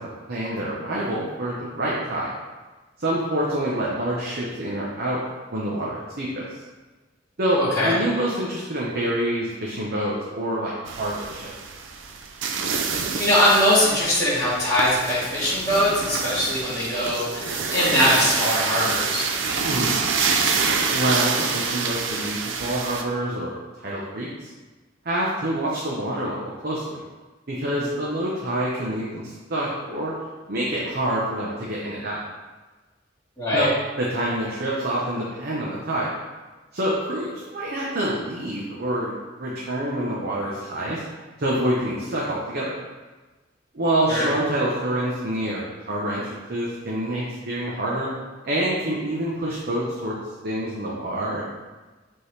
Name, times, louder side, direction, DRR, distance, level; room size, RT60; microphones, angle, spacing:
voice 1, 0.3-2.3 3.0-5.2 5.5-6.4 7.4-11.5 19.7-19.9 20.9-24.5 25.0-27.0 27.5-30.1 30.5-32.2 33.5-33.7 34.0-36.1 36.7-41.0 41.4-42.7 43.7-48.1 48.4-50.1 50.4-51.4, right 1 dB, 55° right, -5 dB, 1.0 m, -27 dB
voice 2, 7.6-7.9 13.2-19.2 33.4-33.7 44.1-44.3, left 1 dB, 10° left, -16 dB, 2.0 m, -21 dB
sound 1, 10.9-23.0, right 5 dB, 80° right, 0.6 m, -27 dB
8.0 x 3.8 x 3.3 m, 1.3 s
head